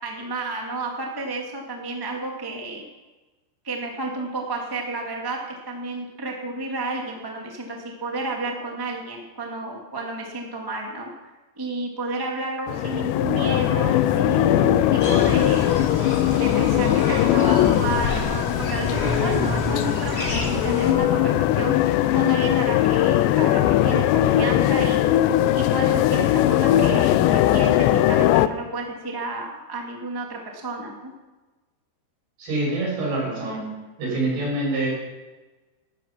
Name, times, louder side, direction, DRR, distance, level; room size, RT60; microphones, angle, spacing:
voice 1, 0.0-2.9 3.6-11.1 11.6-15.7 16.3-25.2 25.5-31.1, right 2 dB, 20° right, 0 dB, 0.6 m, -31 dB
sound 1, 12.7-28.5, left 13 dB, 85° left, 2.8 m, -20 dB
sound 2, 15.0-20.9, left 1 dB, 55° left, 0.7 m, -29 dB
voice 2, 32.4-33.7 34.0-34.9, right 2 dB, 60° right, -2 dB, 7.9 m, -25 dB
15.5 x 13.5 x 5.9 m, 1.2 s
omnidirectional pair, 5.0 m